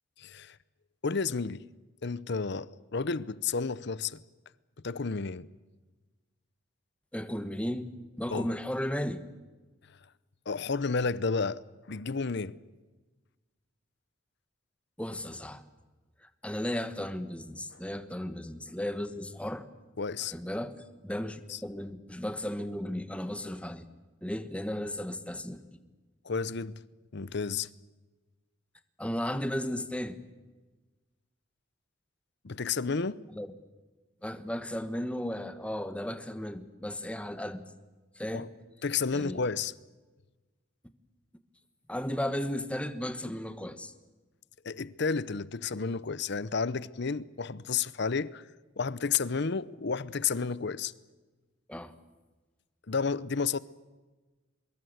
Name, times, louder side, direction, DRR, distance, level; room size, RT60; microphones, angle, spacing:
voice 1, 0.2-0.6 1.0-1.7 2.0-4.2 4.8-5.5 8.3-8.5 10.5-11.6 11.9-12.6 20.0-20.3 21.5-21.6 26.2-26.8 27.1-27.7 32.4-33.2 38.3-38.5 38.8-39.7 44.6-48.4 48.8-50.9 52.9-53.6, left 5 dB, 60° left, 0.8 m, -31 dB
voice 2, 7.1-7.9 8.2-9.2 15.0-15.6 16.4-19.6 20.2-23.9 24.2-25.8 29.0-30.2 33.3-33.5 34.2-37.6 38.2-38.5 39.1-39.4 41.9-43.9 51.7-51.9, left 1 dB, 5° left, 1.3 m, -35 dB
24.0 x 22.5 x 8.0 m
head